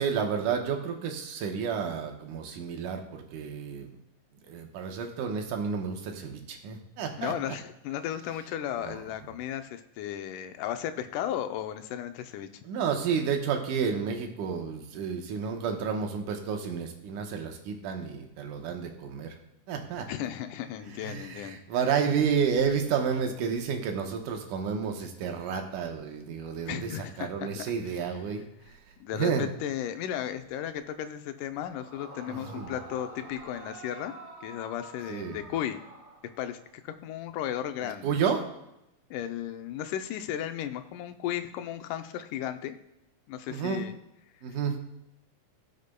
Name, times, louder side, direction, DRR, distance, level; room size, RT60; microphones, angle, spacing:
voice 1, 0.0-3.9 4.4-7.6 8.8-9.0 12.6-19.4 19.7-20.1 21.0-28.4 29.1-29.5 32.3-32.7 35.1-35.4 38.0-38.4 43.5-43.8 44.4-44.8, right 6 dB, 85° right, 4 dB, 2.6 m, -31 dB
voice 2, 7.2-12.5 20.1-21.6 26.7-27.6 29.0-34.1 34.4-35.8 36.4-38.1 39.1-42.8 43.3-44.0, left 10 dB, 90° left, 9 dB, 2.2 m, -35 dB
Yell / Screaming, 31.7-36.6, right 2 dB, 20° right, 2.3 m, -47 dB
17.0 x 6.6 x 2.2 m, 0.87 s
omnidirectional pair, 3.6 m